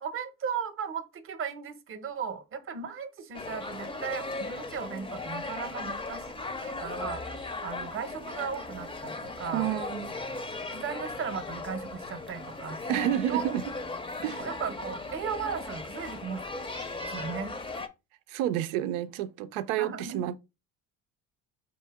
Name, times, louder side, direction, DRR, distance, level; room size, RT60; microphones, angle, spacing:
voice 1, 0.0-6.3 6.6-7.2 7.6-9.7 10.7-13.6 14.4-16.4 17.1-17.6 19.8-20.2, right 6 dB, 35° right, 0.8 m, -36 dB
sound 1, 3.3-17.9, left 3 dB, 15° left, 0.6 m, -37 dB
voice 2, 9.5-10.1 12.9-13.6 14.2-14.4 18.3-20.3, right 12 dB, 85° right, 0.5 m, -29 dB
4.2 x 2.7 x 3.5 m
supercardioid pair, 80°, 38 cm